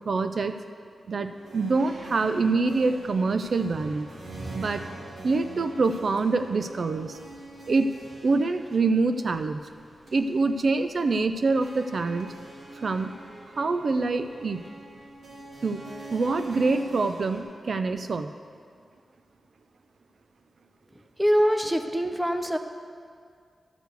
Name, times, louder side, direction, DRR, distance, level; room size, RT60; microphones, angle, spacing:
voice 1, 0.0-0.6 1.1-4.1 4.5-4.9 5.2-7.2 7.7-8.0 8.2-9.6 10.1-12.3 12.7-13.2 13.5-14.6 15.6-15.8 16.1-18.3, right 3 dB, 55° right, 9 dB, 0.4 m, -25 dB
sound 1, 1.3-17.4, right 2 dB, 75° right, 1.9 m, -44 dB
voice 2, 21.2-22.6, equal, 5° right, 6 dB, 0.5 m, -23 dB
12.5 x 4.7 x 8.0 m, 2.1 s
wide cardioid pair, 160°, 0 cm